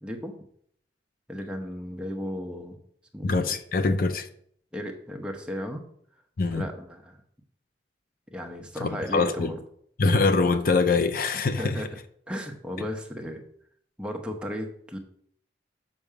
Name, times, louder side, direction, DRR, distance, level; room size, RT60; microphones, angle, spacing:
voice 1, 0.0-0.4 1.3-2.8 3.1-3.4 4.7-5.8 6.5-7.2 8.3-9.5 11.6-11.9 12.3-13.4 14.0-15.0, equal, 5° right, 2 dB, 1.0 m, -35 dB
voice 2, 3.2-4.3 6.4-6.7 8.8-9.5 10.0-11.8, left 3 dB, 50° left, 8 dB, 0.6 m, -24 dB
7.1 x 6.1 x 4.8 m, 0.64 s
head